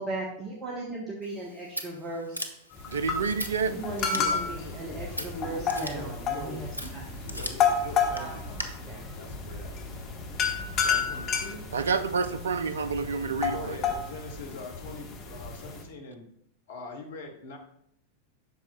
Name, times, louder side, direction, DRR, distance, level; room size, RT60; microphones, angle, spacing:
voice 1, 0.0-2.5 3.7-7.0 7.3-7.7 8.2-8.4 8.9-9.0, right 2 dB, 20° right, -2 dB, 1.0 m, -37 dB
Scissors, 1.2-8.6, equal, 90° left, 0.6 m, -41 dB
sound 1, 2.7-15.8, left 6 dB, 35° left, 1.2 m, -31 dB
voice 2, 2.9-3.8 11.7-13.8, right 5 dB, 70° right, 13 dB, 0.3 m, -28 dB
voice 3, 4.1-6.9 7.2-8.7 9.1-9.9 10.8-11.6 13.2-16.3 16.7-17.6, left 3 dB, 60° left, 3 dB, 1.2 m, -42 dB
sound 2, 4.7-11.3, left 1 dB, 5° right, 2.1 m, -47 dB
8.2 x 6.1 x 2.3 m, 0.72 s
figure-of-eight pair, 90°, 0 cm